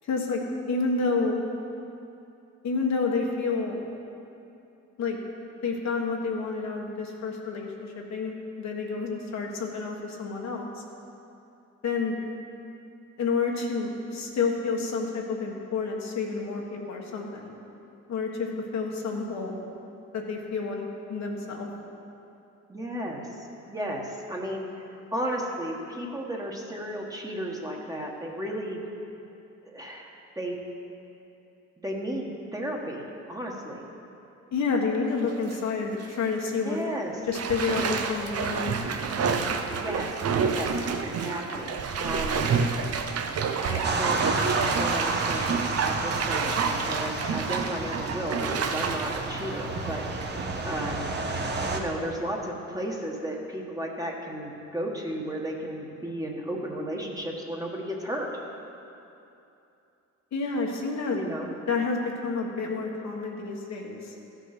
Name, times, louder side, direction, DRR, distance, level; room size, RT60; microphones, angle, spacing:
voice 1, 0.0-1.4 2.6-3.8 5.0-5.2 5.6-10.7 11.8-12.2 13.2-17.5 18.1-19.6 20.1-21.7 34.5-36.8 37.3-38.7 60.3-61.2 61.7-64.1, left 4 dB, 65° left, 0 dB, 1.5 m, -29 dB
voice 2, 22.7-24.7 25.1-28.8 29.6-30.1 30.3-30.6 31.8-33.9 36.6-37.2 39.8-42.4 43.6-50.0 50.7-51.1 51.7-58.3 61.1-61.5, right 1 dB, 10° right, -1 dB, 1.5 m, -34 dB
Bathtub (filling or washing), 35.1-35.6 36.0-36.1 37.3-50.4 50.9-51.0, right 5 dB, 55° right, 0.8 m, -29 dB
sound 1, 43.8-51.8, right 3 dB, 35° right, 1.2 m, -31 dB
13.5 x 6.2 x 6.0 m, 2.8 s
cardioid pair, 90°, 30 cm